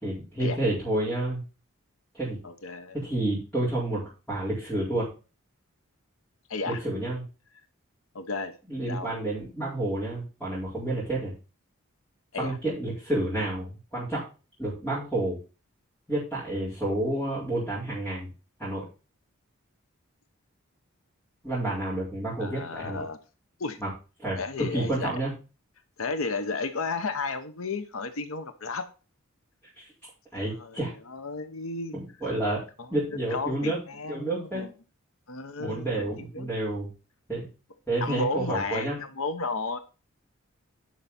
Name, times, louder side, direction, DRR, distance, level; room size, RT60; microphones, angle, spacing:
voice 1, 0.0-1.4 2.1-2.4 2.9-5.1 6.7-7.2 8.7-11.3 12.3-14.2 14.6-15.4 16.1-18.3 18.6-18.8 21.4-23.0 23.8-23.9 24.2-25.3 29.8-29.9 30.3-30.9 32.2-32.6 32.9-33.8 34.1-34.6 35.6-36.9 37.3-37.5 37.9-39.0, right 1 dB, 5° left, -11 dB, 4.4 m, -29 dB
voice 2, 2.4-3.0 6.5-6.8 8.1-8.5 8.9-9.1 12.3-12.6 22.4-23.2 23.6-23.8 24.4-25.1 26.0-28.9 30.3-32.0 32.8-32.9 33.3-34.7 35.3-36.5 38.0-39.8, left 3 dB, 75° left, 10 dB, 0.9 m, -33 dB
10.5 x 5.6 x 4.2 m, 0.32 s
head